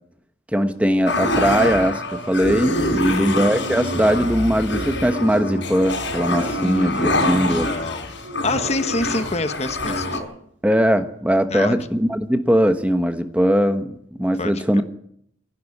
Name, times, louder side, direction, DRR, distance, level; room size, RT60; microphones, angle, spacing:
voice 1, 0.5-7.7 10.6-14.8, equal, 5° right, 8 dB, 1.1 m, -20 dB
sound 1, 1.1-10.2, left 1 dB, 60° left, 5.4 m, -25 dB
sound 2, 2.9-3.0 3.6-3.7 3.9-4.3 4.9-5.7 6.4-6.8 7.4-7.5 8.0-9.1 9.4-9.5 9.8-10.2 10.6-11.0 11.6-12.4 12.6-12.7, right 1 dB, 85° right, 5.8 m, -44 dB
voice 2, 3.0-3.4 6.6-8.1 8.4-10.2 11.5-11.9 14.4-14.8, left 2 dB, 30° left, 10 dB, 1.3 m, -27 dB
27.0 x 11.5 x 8.5 m, 0.69 s
head